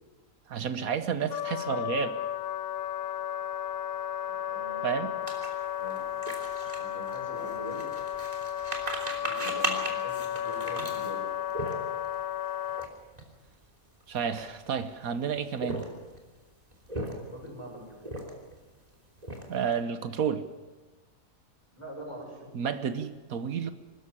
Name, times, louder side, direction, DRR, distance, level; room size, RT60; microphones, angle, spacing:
voice 1, 0.5-2.1 4.8-5.1 14.1-15.9 19.5-20.4 22.5-23.7, right 7 dB, 80° right, 11 dB, 1.5 m, -31 dB
Wind instrument woodwind instrument, 1.3-12.9, left 11 dB, 85° left, 1.4 m, -33 dB
voice 2, 4.2-5.3 5.8-6.0 6.5-7.9 9.2-11.2 17.3-18.2 21.7-22.7, equal, 20° left, -2 dB, 7.0 m, -44 dB
sound 1, 5.3-12.2 12.7-12.9 13.1-13.3 14.0-14.8 15.5-16.2 16.7-17.5 18.0-18.6 18.9-19.7, right 1 dB, 25° right, 3.3 m, -37 dB
23.5 x 13.5 x 9.8 m, 1.2 s
omnidirectional pair, 1.5 m